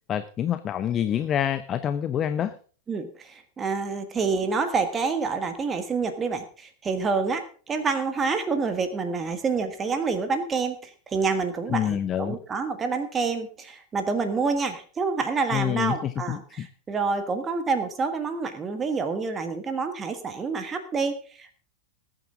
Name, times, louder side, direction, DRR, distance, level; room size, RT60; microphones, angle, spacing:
voice 1, 0.1-2.6 11.7-12.4 15.5-16.7, left 10 dB, 30° left, 12 dB, 0.7 m, -27 dB
voice 2, 2.9-21.6, right 4 dB, 20° right, 8 dB, 1.5 m, -28 dB
20.0 x 9.1 x 3.7 m, 0.42 s
figure-of-eight pair, 90°, 0 cm